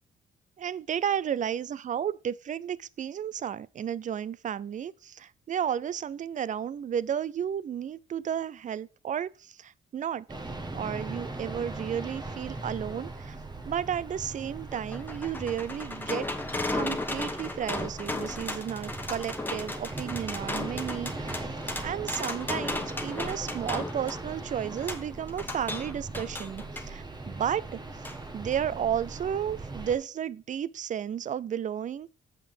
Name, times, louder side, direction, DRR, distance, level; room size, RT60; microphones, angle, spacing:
voice 1, 0.6-10.3 10.7-13.4 13.7-16.3 16.7-21.5 21.8-28.0 28.3-32.1, right 9 dB, 40° right, 0.4 m, -33 dB
sound 1, 10.3-30.0, right 2 dB, 20° right, 1.6 m, -40 dB
sound 2, 14.4-26.9 28.1-28.2 28.5-28.6, left 2 dB, 10° left, 1.2 m, -36 dB
7.5 x 5.5 x 5.4 m
cardioid pair, 90°, 20 cm